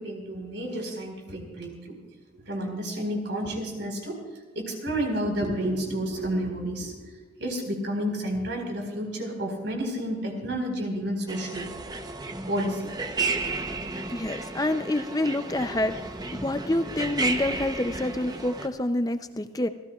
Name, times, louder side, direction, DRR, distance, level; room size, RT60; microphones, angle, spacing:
voice 1, 0.0-2.0 2.3-4.2 4.5-11.7 12.5-12.9, equal, 65° right, 1 dB, 4.5 m, -30 dB
sound 1, 11.3-18.7, right 3 dB, 20° right, 0.8 m, -33 dB
voice 2, 14.1-16.0 16.3-19.7, left 1 dB, 20° left, 9 dB, 0.5 m, -27 dB
29.0 x 15.0 x 2.4 m, 1.3 s
head